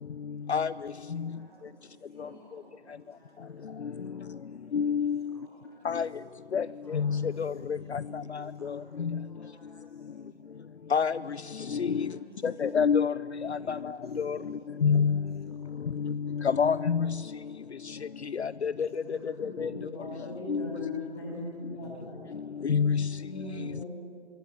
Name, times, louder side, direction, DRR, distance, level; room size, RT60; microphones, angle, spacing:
voice 1, 0.8-3.6 5.3-6.0 7.2-9.0 11.9-12.6 13.7-14.9 15.5-16.6 18.6-18.8 19.1-19.4 21.1-21.5, right 2 dB, 20° right, -2 dB, 2.9 m, -57 dB
voice 2, 1.3-2.4 3.1-4.3 6.0-7.3 8.6-8.9 9.2-10.5 11.9-12.7, equal, 5° left, -7 dB, 5.6 m, -60 dB
voice 3, 4.7-5.2 5.9-6.1 6.5-6.7 6.9-7.5 10.9-11.1 11.7-12.0 12.6-13.1 13.5-13.8 14.2-14.4 14.8-15.2 16.0-16.1 16.6-17.2 18.4-18.9 19.6-19.7 20.5-20.6 22.6-23.1, left 6 dB, 70° left, 18 dB, 0.6 m, -26 dB
voice 4, 18.9-22.3 23.2-23.9, left 2 dB, 25° left, -2 dB, 7.9 m, -39 dB
25.5 x 23.5 x 9.7 m, 2.4 s
figure-of-eight pair, 170°, 34 cm